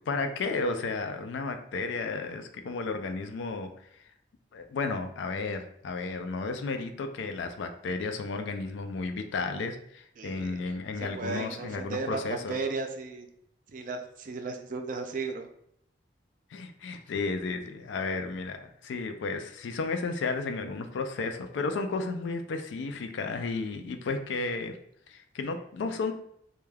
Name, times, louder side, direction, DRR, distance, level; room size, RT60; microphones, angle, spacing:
voice 1, 0.0-4.1 4.5-12.6 16.5-24.8 25.1-26.1, left 3 dB, 85° left, 7 dB, 0.3 m, -33 dB
voice 2, 10.2-13.3 13.7-15.5, right 4 dB, 45° right, 5 dB, 0.3 m, -35 dB
2.2 x 2.2 x 3.2 m, 0.71 s
head